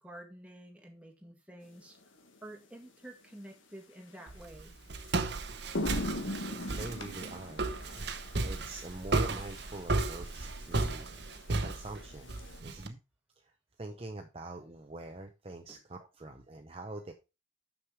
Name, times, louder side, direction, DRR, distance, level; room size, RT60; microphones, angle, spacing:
voice 1, 0.0-2.0 2.4-4.8 15.7-15.8, right 1 dB, 5° right, 1 dB, 1.9 m, -50 dB
sound 1, 2.0-2.3 4.4-4.5 5.0-5.2 5.5-12.6, left 1 dB, 85° left, 1.7 m, -41 dB
Walk footsteps, 4.3-12.9, right 3 dB, 60° right, 0.9 m, -34 dB
voice 2, 6.8-7.7 8.4-11.1 11.6-12.3 12.6-13.0 13.4-13.5 13.8-17.1, right 2 dB, 30° right, 4 dB, 0.8 m, -44 dB
6.6 x 6.5 x 4.7 m, 0.27 s
head